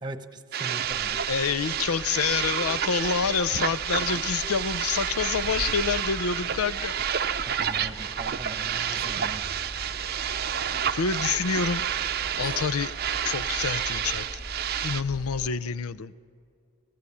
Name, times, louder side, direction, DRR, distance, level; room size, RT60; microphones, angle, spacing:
voice 1, 0.0-1.2 7.5-9.5, right 2 dB, 20° right, 9 dB, 1.2 m, -40 dB
sound 1, 0.5-15.0, right 9 dB, 45° right, 0.6 m, -30 dB
sound 2, 0.9-15.5, equal, 20° left, 2.5 m, -42 dB
voice 2, 1.3-6.9 10.9-11.8 12.4-12.9 13.2-14.4 14.8-16.1, left 6 dB, 85° left, 17 dB, 0.6 m, -27 dB
29.0 x 17.0 x 8.6 m, 2.4 s
head